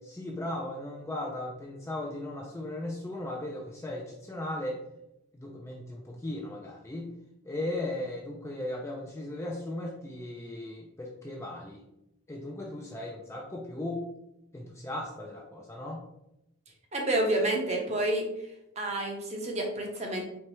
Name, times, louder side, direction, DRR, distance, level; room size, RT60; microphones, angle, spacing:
voice 1, 0.0-4.8 5.3-7.1 7.4-11.8 12.3-14.0 14.5-16.0, left 1 dB, 10° left, -1 dB, 0.4 m, -37 dB
voice 2, 16.9-18.2 18.8-20.2, right 1 dB, 30° right, 0 dB, 0.8 m, -29 dB
4.5 x 3.2 x 3.2 m, 0.83 s
head